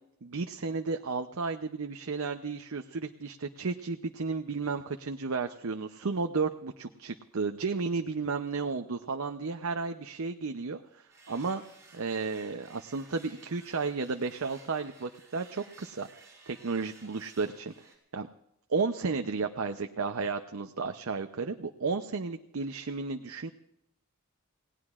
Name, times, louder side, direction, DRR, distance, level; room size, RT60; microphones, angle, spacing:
voice 1, 0.2-11.6 11.9-17.7 18.1-18.3 18.7-23.5, right 4 dB, 75° right, 6 dB, 0.7 m, -33 dB
sound 1, 11.1-18.0, right 3 dB, 15° right, 5.5 m, -56 dB
27.0 x 18.0 x 2.5 m, 0.81 s
head